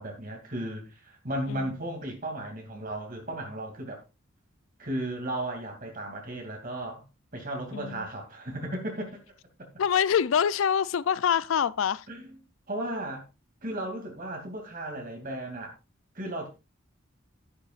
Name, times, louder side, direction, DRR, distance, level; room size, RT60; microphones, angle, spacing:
voice 1, 0.0-4.0 4.8-7.0 7.3-9.1 12.1-12.3 12.7-13.2 13.6-15.7 16.1-16.5, right 1 dB, 45° right, 2.5 m, -35 dB
voice 2, 7.7-8.1 9.8-12.1, left 8 dB, 80° left, 0.4 m, -25 dB
11.0 x 11.0 x 2.4 m
head